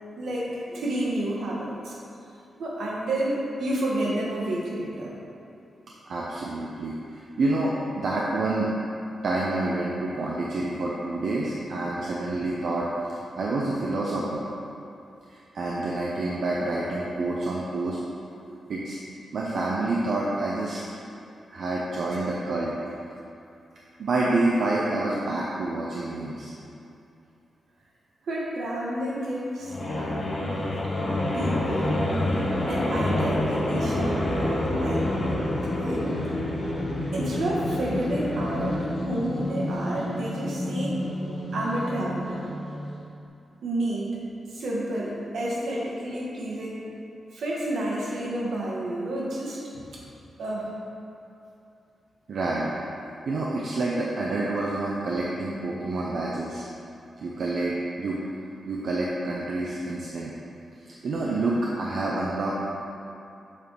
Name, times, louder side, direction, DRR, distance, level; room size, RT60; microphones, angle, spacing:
voice 1, 0.2-2.0 2.6-5.1 28.2-30.5 31.3-32.0 32.7-35.1 35.8-36.3 37.1-41.0 41.5-42.5 43.6-44.1 44.5-46.8 47.3-49.6 49.9-50.0 50.4-50.7, right 1 dB, 80° right, -4 dB, 1.3 m, -30 dB
voice 2, 6.1-8.7 9.2-12.9 13.3-14.4 15.3-18.0 18.7-19.0 19.3-20.8 21.5-22.8 24.0-26.5 52.3-52.7 53.3-56.7 57.2-58.2 58.7-60.3 60.9-62.6, right 2 dB, 60° right, -4 dB, 0.6 m, -28 dB
sound 1, 29.6-42.9, left 1 dB, 45° left, 1.0 m, -28 dB
7.2 x 3.5 x 4.5 m, 2.7 s
wide cardioid pair, 145°, 0 cm